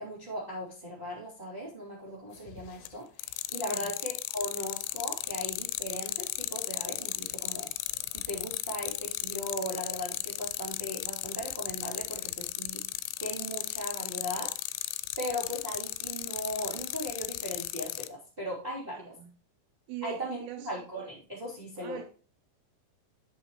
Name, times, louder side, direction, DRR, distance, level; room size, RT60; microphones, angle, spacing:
voice 1, 0.0-7.7 8.1-12.8 13.2-14.5 15.2-19.0 20.0-22.0, equal, 15° right, 2.6 m, -38 dB
sound 1, 2.5-2.9 3.2-18.1, left 17 dB, 85° left, 2.6 m, -35 dB
voice 2, 3.6-3.9 18.9-19.3 19.9-20.7 21.8-22.0, right 12 dB, 80° right, 2.9 m, -42 dB
12.0 x 6.2 x 3.1 m
omnidirectional pair, 4.8 m